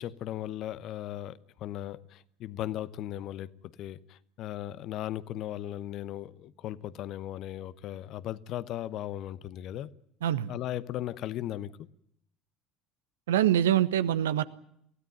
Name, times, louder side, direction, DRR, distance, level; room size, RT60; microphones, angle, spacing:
voice 1, 0.0-3.5 3.8-9.9 10.5-11.7, left 12 dB, 55° left, 1.0 m, -37 dB
voice 2, 10.2-10.5 13.3-14.4, right 11 dB, 75° right, 1.0 m, -24 dB
23.5 x 16.5 x 9.4 m
figure-of-eight pair, 65°, 0 cm